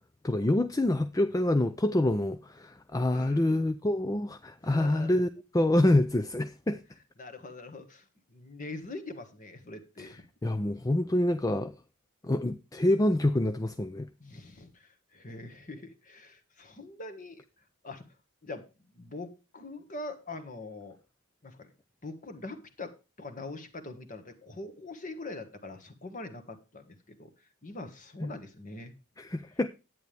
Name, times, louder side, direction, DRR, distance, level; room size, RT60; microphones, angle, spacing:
voice 1, 0.2-6.8 10.0-11.7 12.2-14.1 28.2-28.3 29.2-29.7, left 1 dB, 15° left, 0.4 m, -27 dB
voice 2, 3.1-3.6 4.6-5.1 7.2-10.2 14.2-17.4 17.8-18.1 18.4-18.7 18.9-21.0 21.4-21.7 22.0-28.9, left 2 dB, 35° left, 1.6 m, -43 dB
11.0 x 9.2 x 3.4 m
head